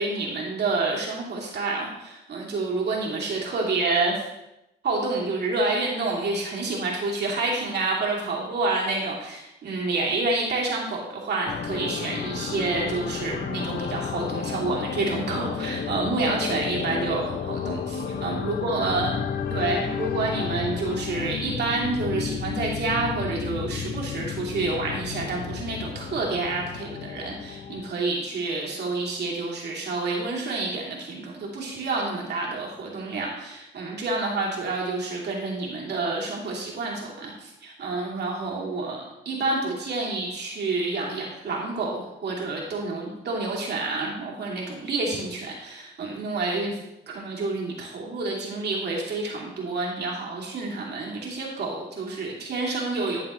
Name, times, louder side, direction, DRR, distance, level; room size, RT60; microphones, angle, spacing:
voice 1, 0.0-4.2 4.8-19.1 19.5-46.8 47.1-53.3, right 3 dB, 55° right, -3 dB, 2.6 m, -28 dB
sound 1, 11.5-27.9, left 7 dB, 50° left, 0.8 m, -32 dB
12.0 x 6.6 x 3.1 m, 0.91 s
cardioid pair, 90°, 20 cm